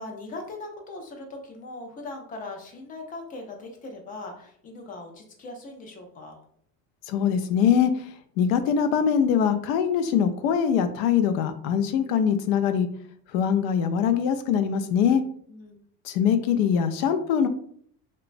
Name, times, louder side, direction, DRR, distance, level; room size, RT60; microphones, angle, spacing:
voice 1, 0.0-6.4 15.5-15.8, left 2 dB, 25° left, 2 dB, 0.3 m, -40 dB
voice 2, 7.1-8.1 8.4-12.9 13.3-15.2 16.0-17.5, left 7 dB, 85° left, 9 dB, 0.5 m, -22 dB
3.0 x 2.1 x 2.4 m, 0.62 s
cardioid pair, 150°, 39 cm